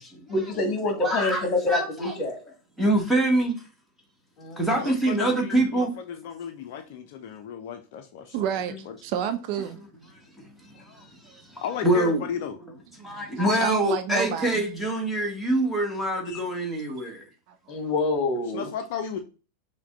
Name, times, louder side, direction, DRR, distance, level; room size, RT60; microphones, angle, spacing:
voice 1, 0.3-2.4 4.4-4.8 16.3-16.4 17.7-18.7, left 2 dB, 30° left, 1.5 m, -27 dB
voice 2, 1.0-2.1 2.8-3.6 4.6-5.9 10.4-12.2 13.0-17.2, right 1 dB, ahead, 1.5 m, -25 dB
voice 3, 4.8-8.4 11.6-12.6 18.5-19.2, left 7 dB, 50° left, 0.5 m, -34 dB
voice 4, 8.3-9.8 10.7-10.8 11.3-11.4 13.0-13.3 13.6-14.6 17.0-17.1 17.5-17.6, right 9 dB, 45° right, 0.4 m, -30 dB
5.8 x 2.2 x 3.8 m
figure-of-eight pair, 90°, 0 cm